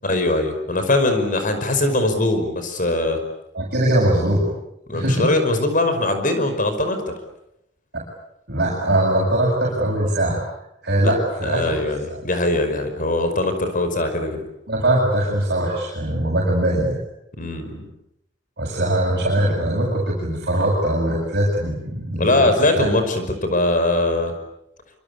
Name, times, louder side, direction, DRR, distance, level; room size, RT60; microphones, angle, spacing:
voice 1, 0.0-3.2 4.9-7.0 11.0-11.1 11.4-14.4 17.4-17.9 22.2-24.3, left 2 dB, 45° left, 8 dB, 5.4 m, -21 dB
voice 2, 3.5-4.5 4.9-5.3 7.9-8.0 8.5-10.4 10.8-11.7 14.7-17.0 18.6-22.5 22.7-22.9, right 1 dB, 60° right, -3 dB, 7.5 m, -21 dB
26.0 x 26.0 x 8.5 m, 0.81 s
head